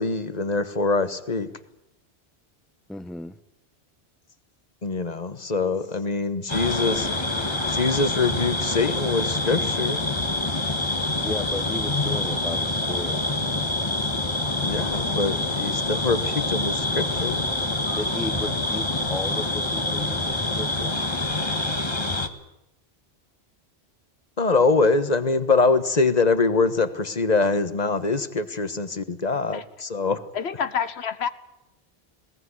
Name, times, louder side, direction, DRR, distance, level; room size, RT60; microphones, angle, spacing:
voice 1, 0.0-1.5 4.8-7.1 7.7-10.1 14.6-17.4 24.4-30.2, left 3 dB, 40° left, 12 dB, 1.5 m, -24 dB
voice 2, 2.9-3.4 11.2-13.2 17.9-20.9, left 2 dB, ahead, 12 dB, 0.9 m, -34 dB
sound 1, 6.5-22.3, left 2 dB, 25° left, 1.7 m, -26 dB
voice 3, 30.3-31.3, left 7 dB, 90° left, 13 dB, 1.3 m, -27 dB
21.0 x 19.0 x 9.8 m, 0.87 s
omnidirectional pair, 1.1 m